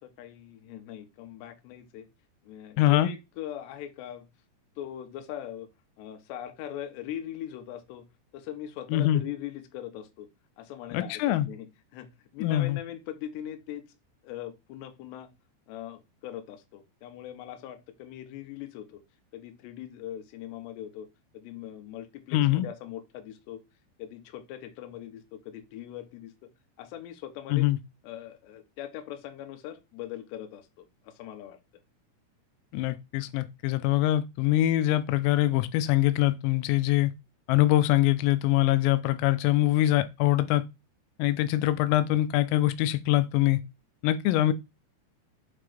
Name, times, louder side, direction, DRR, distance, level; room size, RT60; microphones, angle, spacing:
voice 1, 0.0-2.1 2.4-4.3 4.8-5.7 6.0-8.0 8.3-10.3 10.6-11.7 11.9-13.9 14.2-15.3 15.7-19.0 19.3-21.1 21.3-23.6 24.0-26.5 26.8-27.7 28.0-31.6, left 11 dB, 75° left, 2.9 m, -41 dB
voice 2, 2.8-3.1 8.9-9.2 10.9-11.5 12.4-12.8 22.3-22.7 27.5-27.8 32.7-37.1 37.5-40.6 41.2-43.6 44.0-44.5, left 15 dB, 90° left, 3.2 m, -23 dB
7.7 x 3.3 x 5.0 m
omnidirectional pair, 5.8 m